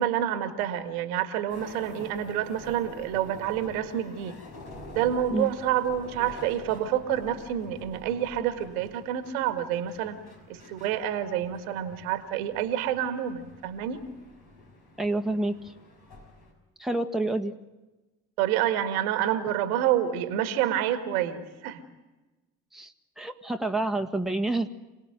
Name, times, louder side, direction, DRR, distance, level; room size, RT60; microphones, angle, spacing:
voice 1, 0.0-4.4 4.9-10.2 10.5-14.1 18.4-21.8, right 10 dB, 70° right, 11 dB, 1.8 m, -28 dB
sound 1, 1.5-16.5, left 2 dB, 60° left, 6.4 m, -48 dB
voice 2, 15.0-15.6 16.8-17.5 22.7-24.7, right 2 dB, ahead, 5 dB, 1.8 m, -28 dB
27.0 x 18.5 x 9.4 m, 1.1 s
figure-of-eight pair, 45°, 44 cm